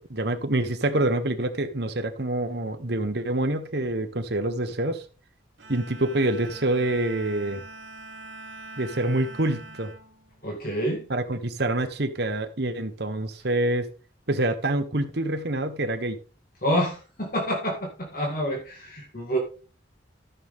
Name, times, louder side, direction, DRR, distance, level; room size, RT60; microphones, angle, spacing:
voice 1, 0.1-5.0 5.7-7.6 8.8-9.9 11.1-13.9 14.3-16.2, right 1 dB, 60° right, 1.2 m, -26 dB
Bowed string instrument, 5.6-11.1, right 2 dB, 75° right, 3.0 m, -44 dB
voice 2, 10.4-11.0 16.6-19.4, equal, 50° left, 2.2 m, -27 dB
14.0 x 6.7 x 3.7 m
head